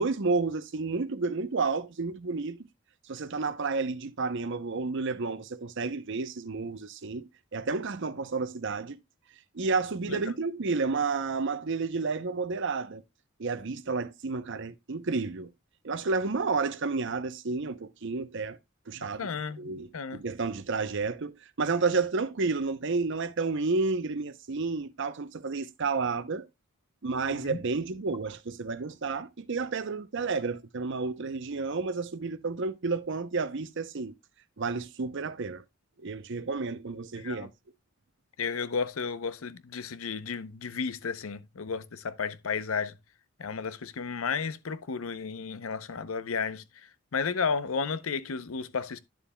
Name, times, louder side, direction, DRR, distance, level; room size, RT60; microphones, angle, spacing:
voice 1, 0.0-2.7 3.1-9.0 9.5-13.0 13.4-15.5 15.8-18.6 18.9-19.3 19.6-26.5 27.0-34.1 34.6-35.6 36.0-37.5, right 4 dB, 60° right, 0.7 m, -31 dB
voice 2, 18.9-20.2 27.3-27.6 37.2-37.5 38.4-42.9 43.4-46.6 47.1-49.0, left 5 dB, 80° left, 0.7 m, -33 dB
11.0 x 7.0 x 2.2 m
head